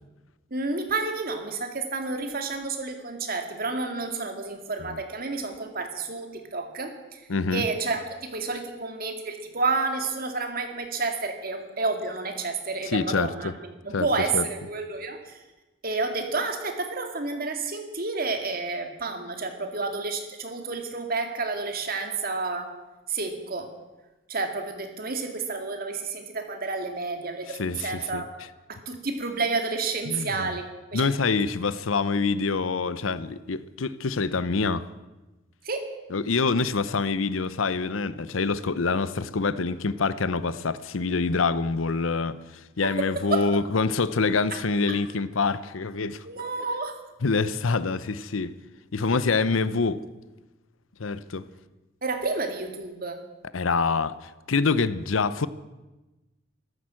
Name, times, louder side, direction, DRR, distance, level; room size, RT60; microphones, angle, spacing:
voice 1, 0.5-7.2 7.5-13.5 13.8-15.4 15.8-22.7 23.1-23.7 24.3-28.3 28.7-31.1 35.6-35.9 42.8-43.6 44.5-44.6 44.9-45.0 46.3-47.0 52.0-53.2, right 3 dB, 45° right, 2.2 m, -30 dB
voice 2, 7.3-7.6 12.9-13.5 13.9-14.1 14.3-14.4 27.5-28.2 30.1-30.5 30.9-34.8 36.1-42.4 42.8-46.2 47.2-48.5 48.9-50.0 51.0-51.5 53.5-55.5, left 4 dB, 90° left, 0.7 m, -26 dB
14.0 x 13.0 x 7.6 m
head